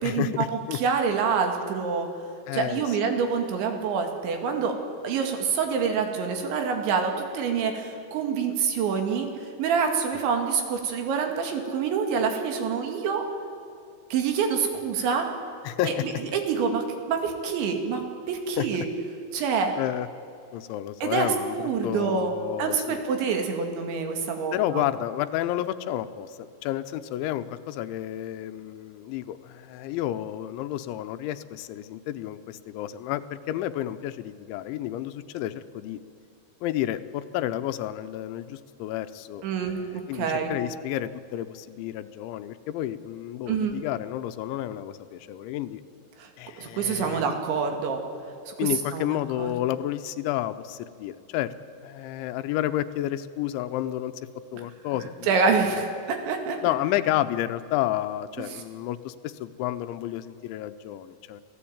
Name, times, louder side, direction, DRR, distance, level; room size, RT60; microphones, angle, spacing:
voice 1, 0.0-0.8 2.5-3.0 15.6-16.0 18.6-18.7 19.8-20.1 20.5-23.0 24.5-36.0 36.6-45.8 46.4-47.4 48.6-51.5 51.8-54.1 54.5-55.8 56.6-61.4, left 13 dB, 85° left, 11 dB, 3.1 m, -31 dB
voice 2, 0.7-2.1 2.5-4.7 5.0-9.3 9.6-13.2 14.1-15.3 15.8-15.9 16.3-18.0 18.3-18.9 19.3-19.7 21.0-21.3 21.5-22.3 22.6-24.8 39.4-40.6 43.5-43.7 46.6-48.0 48.5-49.5 55.3-56.6, right 6 dB, 75° right, 4 dB, 4.5 m, -26 dB
26.5 x 16.5 x 8.8 m, 2.4 s
omnidirectional pair, 5.3 m